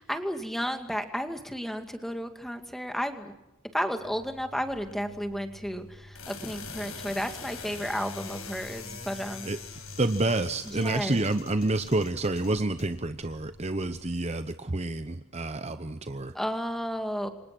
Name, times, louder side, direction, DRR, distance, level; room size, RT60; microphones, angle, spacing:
voice 1, 0.0-3.3 3.7-9.5 10.7-11.2 16.3-17.3, equal, ahead, 6 dB, 2.3 m, -32 dB
sound 1, 4.0-14.1, left 4 dB, 75° left, 6.1 m, -44 dB
voice 2, 10.0-16.3, right 2 dB, 30° right, 10 dB, 0.9 m, -28 dB
29.0 x 25.5 x 6.1 m, 0.91 s
head